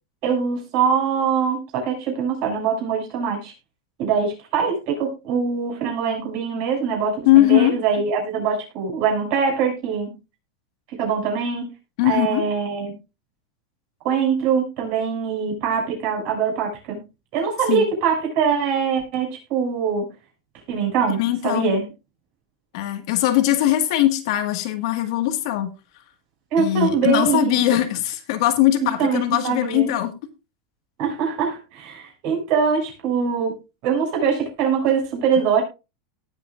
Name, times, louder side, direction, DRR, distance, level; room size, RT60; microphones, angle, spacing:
voice 1, 0.2-3.5 4.0-10.1 10.9-11.7 12.0-12.9 14.0-17.0 17.3-20.0 20.7-21.8 26.5-27.6 29.0-29.9 31.0-33.5 33.8-35.6, right 6 dB, 45° right, 1 dB, 6.7 m, -23 dB
voice 2, 7.3-7.8 12.0-12.5 17.7-17.9 21.2-21.7 22.7-25.7 26.6-30.1, left 14 dB, 60° left, 8 dB, 1.8 m, -20 dB
18.5 x 8.2 x 2.5 m, 0.27 s
supercardioid pair, 160°, 3 cm